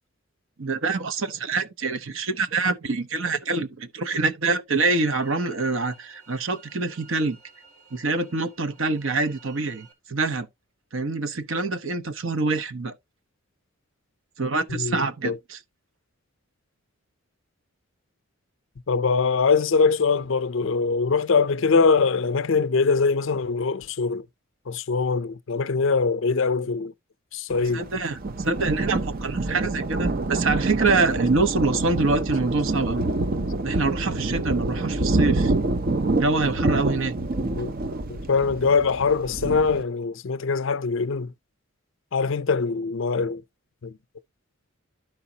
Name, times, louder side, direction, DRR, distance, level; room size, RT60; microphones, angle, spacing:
voice 1, 0.6-7.4 7.9-10.5 10.9-12.9 14.4-15.6 27.7-33.1 33.6-35.5 36.1-37.1, right 3 dB, 65° right, 0.9 m, -25 dB
sound 1, 4.8-9.9, right 5 dB, 80° right, 2.5 m, -53 dB
voice 2, 14.7-15.4 18.9-24.3 24.7-26.9 27.3-27.8 37.6-37.7 38.3-41.3 42.1-43.4 43.8-43.9, left 4 dB, 60° left, 0.5 m, -22 dB
Thunder, 27.5-39.8, right 2 dB, 40° right, 0.5 m, -27 dB
12.0 x 5.0 x 2.8 m
head